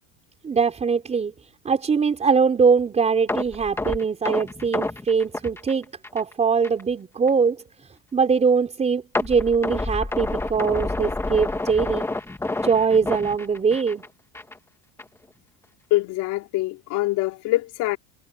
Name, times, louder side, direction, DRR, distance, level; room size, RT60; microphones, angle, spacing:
voice 1, 0.4-1.3 1.6-5.8 6.1-7.6 8.1-12.0 12.6-14.0, right 5 dB, 20° right, 4.6 m, -22 dB
sound 1, 3.3-6.3 6.6-6.8 7.3-7.4 9.1-14.1 14.3-14.6 15.0-15.1, left 2 dB, 5° left, 1.8 m, -28 dB
voice 2, 15.9-18.0, left 18 dB, 60° left, 3.2 m, -24 dB
cardioid pair, 150°, 34 cm